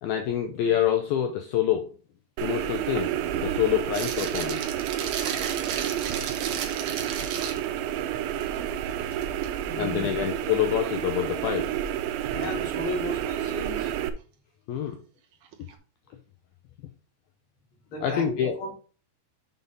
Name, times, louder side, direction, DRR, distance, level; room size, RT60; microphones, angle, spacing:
voice 1, 0.0-1.9 2.4-4.6 7.2-7.3 9.7-11.7 14.7-15.0 18.0-18.6, left 9 dB, 80° left, 2.2 m, -26 dB
sound 1, 2.4-14.1, right 11 dB, 90° right, 3.1 m, -30 dB
sound 2, 3.9-7.8 8.3-8.6 9.0-9.5 12.4-12.5 15.5-15.7, right 8 dB, 70° right, 2.0 m, -34 dB
voice 2, 9.6-10.1 12.3-13.9 17.9-18.7, left 1 dB, 35° left, 2.5 m, -34 dB
7.5 x 5.6 x 3.9 m
omnidirectional pair, 5.2 m